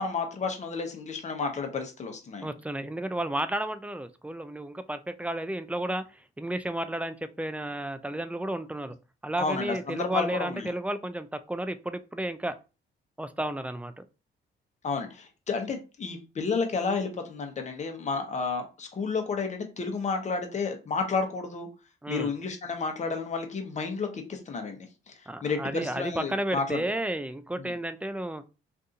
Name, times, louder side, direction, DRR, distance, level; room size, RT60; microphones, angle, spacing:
voice 1, 0.0-2.5 9.4-10.7 14.8-21.7 22.1-25.1 25.4-26.8 27.6-27.7, left 4 dB, 35° left, 4 dB, 0.9 m, -31 dB
voice 2, 2.4-8.9 9.2-12.5 13.2-14.0 22.0-22.3 25.3-28.4, right 1 dB, 5° right, 11 dB, 0.3 m, -32 dB
2.7 x 2.6 x 3.6 m, 0.31 s
cardioid pair, 90°, 20 cm